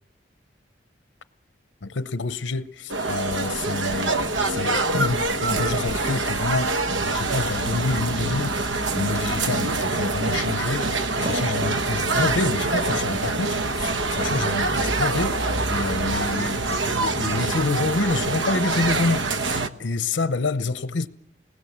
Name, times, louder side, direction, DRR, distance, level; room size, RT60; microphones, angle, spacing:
voice 1, 1.8-4.2 4.4-6.7 7.1-19.2 19.5-21.1, left 3 dB, 85° left, 0.8 m, -27 dB
sound 1, 2.9-19.7, right 3 dB, 90° right, 1.1 m, -25 dB
sound 2, 5.4-17.5, left 1 dB, 75° right, 5.9 m, -38 dB
sound 3, 10.0-14.2 14.4-14.6 14.9-15.0, right 2 dB, 45° right, 0.9 m, -39 dB
29.5 x 20.0 x 7.4 m
head